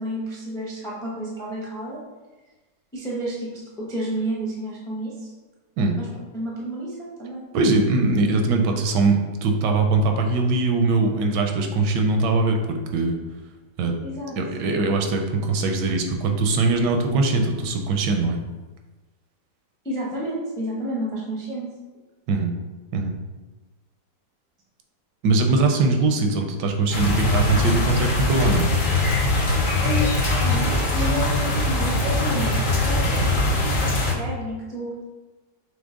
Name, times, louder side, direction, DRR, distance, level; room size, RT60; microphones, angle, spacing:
voice 1, 0.0-2.0 2.9-5.3 5.9-6.1 6.3-7.5 14.0-14.3 19.8-21.7 29.8-32.5 32.8-34.9, right 1 dB, 5° left, -4 dB, 0.3 m, -30 dB
voice 2, 7.5-13.2 13.8-13.9 14.4-18.4 22.3-22.5 22.9-23.2 25.2-28.7, right 3 dB, 80° right, 4 dB, 1.2 m, -21 dB
sound 1, 26.9-34.1, left 2 dB, 60° left, 0.5 m, -22 dB
6.0 x 2.0 x 3.7 m, 1.2 s
omnidirectional pair, 1.9 m